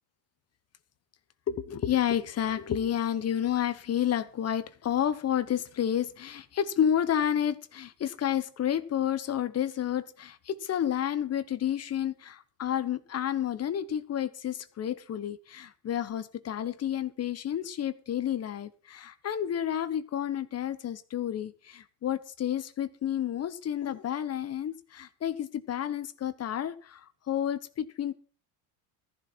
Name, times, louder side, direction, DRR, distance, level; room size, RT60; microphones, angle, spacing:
voice 1, 1.5-28.1, left 10 dB, 30° left, 14 dB, 1.1 m, -30 dB
14.5 x 11.0 x 4.5 m, 0.40 s
supercardioid pair, 115°, 47 cm